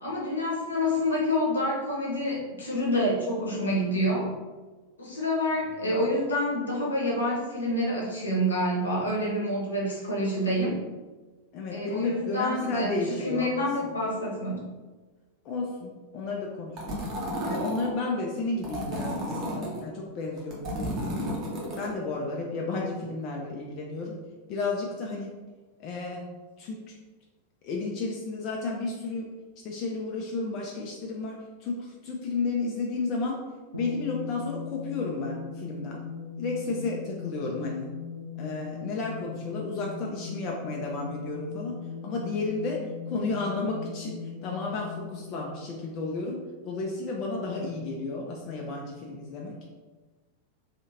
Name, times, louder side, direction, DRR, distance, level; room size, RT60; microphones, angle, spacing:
voice 1, 0.0-4.3 5.0-10.8 11.7-14.7, left 1 dB, 75° left, -4 dB, 0.9 m, -27 dB
voice 2, 11.5-13.5 13.8-13.9 15.4-17.0 17.4-21.2 21.8-24.2 24.5-25.3 25.8-26.3 26.6-27.0 27.6-29.3 29.6-33.4 33.7-36.0 36.4-37.9 38.4-41.8 42.0-49.6, left 3 dB, 40° left, -1 dB, 0.4 m, -32 dB
sound 1, 16.8-17.9 18.6-19.8 20.4-21.9, equal, 35° right, 0.9 m, -32 dB
sound 2, 33.7-46.6, left 6 dB, 85° right, 0.4 m, -39 dB
3.3 x 2.7 x 2.8 m, 1.3 s
figure-of-eight pair, 90°, 0 cm